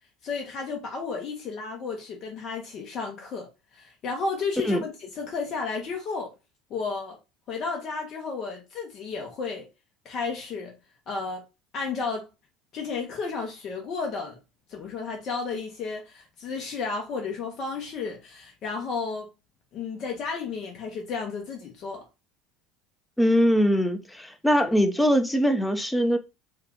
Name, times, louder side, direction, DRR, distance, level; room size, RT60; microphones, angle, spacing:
voice 1, 0.2-6.3 6.7-7.2 7.5-9.7 10.0-10.7 11.1-11.4 11.7-12.3 12.7-14.4 14.7-19.3 19.7-22.0, left 4 dB, 50° left, 0.9 m, -32 dB
voice 2, 23.2-26.2, equal, 5° left, 0.6 m, -22 dB
2.8 x 2.4 x 3.5 m
hypercardioid pair, 80°, 0 cm